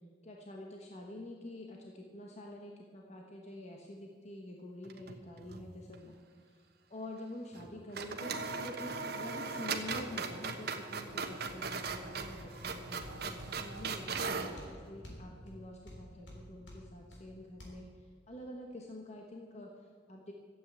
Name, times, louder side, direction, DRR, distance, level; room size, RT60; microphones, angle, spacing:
voice 1, 0.2-20.3, left 1 dB, 35° left, 0 dB, 1.2 m, -47 dB
sound 1, 4.8-5.7 5.9-6.0 7.5-7.7 7.9-14.6, right 4 dB, 55° right, 1.1 m, -39 dB
sound 2, 11.1-17.7, equal, 70° left, 3.6 m, -52 dB
13.0 x 8.3 x 8.6 m, 2.1 s
head